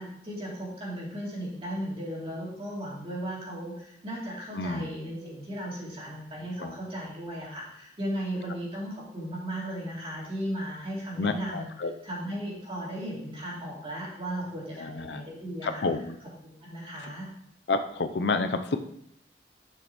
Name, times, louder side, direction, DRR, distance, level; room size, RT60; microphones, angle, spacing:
voice 1, 0.0-11.7 12.0-15.8 16.4-17.3, equal, 35° right, -5 dB, 2.9 m, -36 dB
voice 2, 4.5-4.9 6.6-6.8 11.2-11.9 14.8-15.2 15.6-16.2 17.7-18.8, left 3 dB, 70° left, 8 dB, 0.6 m, -29 dB
11.0 x 6.2 x 3.1 m, 0.72 s
head